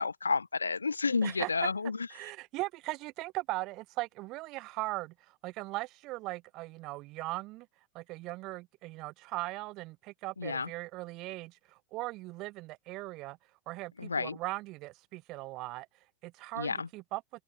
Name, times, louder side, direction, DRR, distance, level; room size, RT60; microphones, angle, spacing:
voice 1, 0.0-2.3 10.4-10.7 14.0-14.4 16.5-16.9, left 4 dB, 75° left, 1.1 m, -31 dB
voice 2, 2.1-7.7 7.9-13.4 13.7-15.9 16.2-17.2, right 20 dB, 40° right, 0.6 m, -39 dB
figure-of-eight pair, 90°, 0 cm